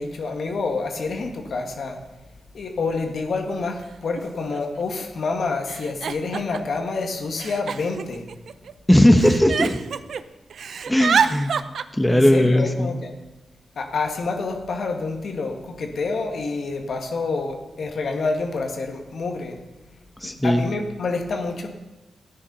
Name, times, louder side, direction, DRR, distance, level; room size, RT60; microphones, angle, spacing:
voice 1, 0.0-2.0 2.5-8.2 12.1-13.1 13.8-19.6 20.2-21.7, left 3 dB, 70° left, 4 dB, 1.8 m, -28 dB
Giggle, 3.1-3.2 4.1-4.2 4.5-5.0 5.7-6.8 7.4-8.7 9.2-10.2 10.5-11.8, right 6 dB, 75° right, 0.6 m, -26 dB
voice 2, 8.9-9.8 10.9-11.5 11.9-12.9 20.2-20.6, left 1 dB, 10° left, 6 dB, 1.3 m, -17 dB
13.0 x 9.7 x 5.6 m, 1.1 s
cardioid pair, 55°, 0 cm